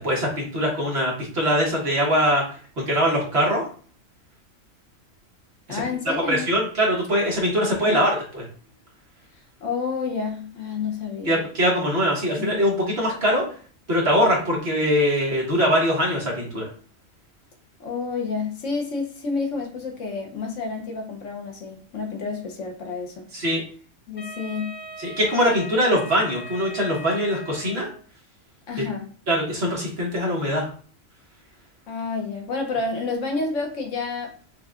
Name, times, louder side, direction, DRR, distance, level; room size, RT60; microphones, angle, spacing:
voice 1, 0.0-2.4 2.8-3.7 5.7-5.8 6.0-8.4 11.2-13.5 13.9-16.7 23.3-23.6 25.0-27.9 28.8-28.9 29.3-30.7, equal, 50° right, -2 dB, 1.4 m, -22 dB
voice 2, 5.7-6.5 7.8-8.1 9.6-11.4 12.4-12.6 17.8-23.3 24.1-24.8 28.7-29.1 31.9-34.3, left 4 dB, 65° left, 2 dB, 1.1 m, -29 dB
Wind instrument woodwind instrument, 24.2-28.0, left 1 dB, 40° left, 0.8 m, -40 dB
6.2 x 2.2 x 2.4 m, 0.43 s
omnidirectional pair, 1.4 m